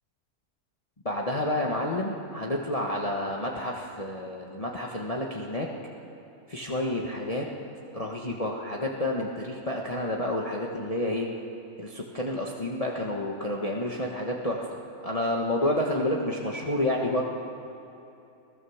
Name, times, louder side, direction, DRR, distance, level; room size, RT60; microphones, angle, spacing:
voice 1, 1.0-5.7 6.5-7.4 7.9-11.3 11.8-17.2, left 1 dB, 25° left, -2 dB, 1.4 m, -29 dB
25.0 x 16.5 x 7.2 m, 2.9 s
omnidirectional pair, 1.6 m